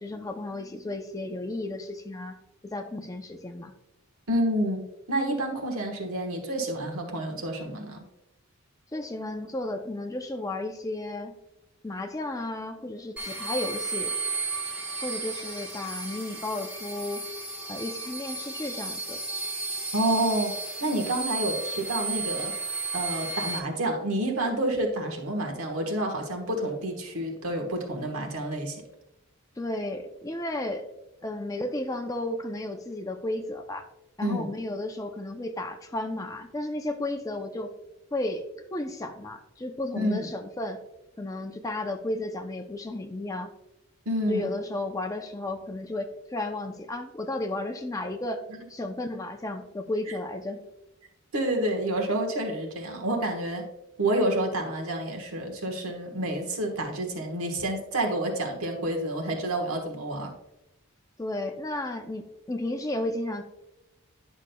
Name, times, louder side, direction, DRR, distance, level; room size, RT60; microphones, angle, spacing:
voice 1, 0.0-2.4 2.6-3.7 8.9-11.3 11.8-14.2 15.0-17.2 17.7-19.2 29.6-30.9 31.2-33.8 34.2-37.7 38.1-38.5 38.7-40.8 41.2-43.5 44.3-48.4 48.7-50.6 61.2-63.4, left 1 dB, 15° left, 5 dB, 0.5 m, -33 dB
voice 2, 4.3-8.0 19.9-20.5 20.8-22.5 22.9-28.8 34.2-34.5 39.9-40.3 44.0-44.5 51.3-53.6 54.0-60.3, right 1 dB, 75° right, 2 dB, 1.3 m, -29 dB
sound 1, 13.2-23.6, right 3 dB, 5° right, 1.0 m, -33 dB
10.0 x 6.1 x 2.2 m, 0.92 s
head